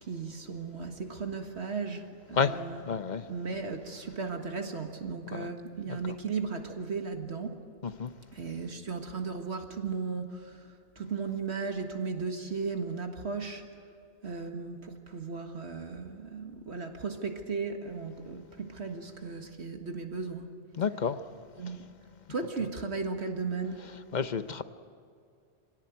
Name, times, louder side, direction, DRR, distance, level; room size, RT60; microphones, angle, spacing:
voice 1, 0.0-2.8 3.3-7.6 8.3-13.6 14.2-20.5 21.6-21.9 22.3-23.9, right 4 dB, 65° right, 1.9 m, -36 dB
voice 2, 2.3-3.3 5.3-5.5 5.9-6.0 7.8-8.1 20.8-21.2 24.1-24.6, left 6 dB, 45° left, 0.8 m, -30 dB
25.5 x 17.5 x 9.4 m
omnidirectional pair, 1.2 m